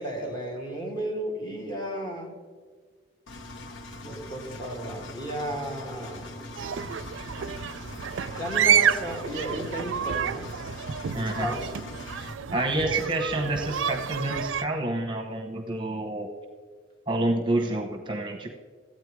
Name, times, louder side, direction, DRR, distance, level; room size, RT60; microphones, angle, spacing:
voice 1, 0.0-2.3 4.0-6.3 8.4-10.5 11.1-11.7, equal, 25° left, 0 dB, 2.0 m, -33 dB
Engine, 3.3-12.3, left 2 dB, 85° left, 0.9 m, -42 dB
sound 1, 6.6-14.7, right 8 dB, 80° right, 0.5 m, -29 dB
voice 2, 11.1-11.5 12.2-16.3 17.1-18.5, right 1 dB, 25° right, 4 dB, 0.9 m, -28 dB
14.5 x 8.9 x 4.7 m, 1.5 s
head